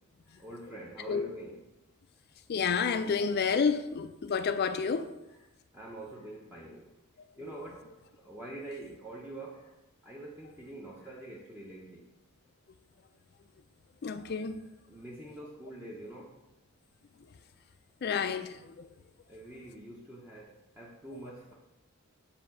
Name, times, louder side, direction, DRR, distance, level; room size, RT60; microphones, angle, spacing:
voice 1, 0.2-1.6 5.3-5.4 5.7-6.9 7.4-7.9 8.2-9.7 10.0-12.1 14.6-16.4 19.3-21.5, right 1 dB, 10° right, 0.6 m, -45 dB
voice 2, 2.5-5.1 14.0-14.6 18.0-18.9, left 5 dB, 50° left, 0.4 m, -30 dB
6.9 x 2.8 x 5.6 m
head